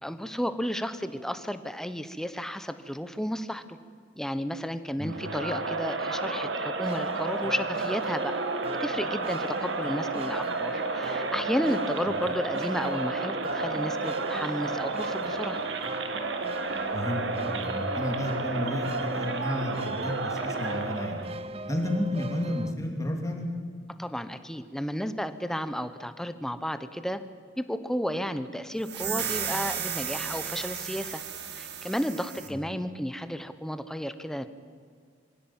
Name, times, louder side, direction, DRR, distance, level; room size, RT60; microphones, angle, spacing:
voice 1, 0.0-3.8 4.2-8.4 8.8-15.6 24.0-27.2 27.6-31.2 31.5-34.5, equal, 5° left, 11 dB, 1.0 m, -32 dB
Crowd, 5.0-21.3, right 3 dB, 80° right, 1.8 m, -31 dB
sound 1, 6.8-22.7, right 2 dB, 35° right, 0.6 m, -39 dB
voice 2, 16.9-21.3 21.7-23.5 32.5-32.6, left 1 dB, 20° left, 1 dB, 3.1 m, -32 dB
sound 2, 28.8-32.5, right 8 dB, 65° right, 2.2 m, -34 dB
25.0 x 16.5 x 8.9 m, 2.1 s
head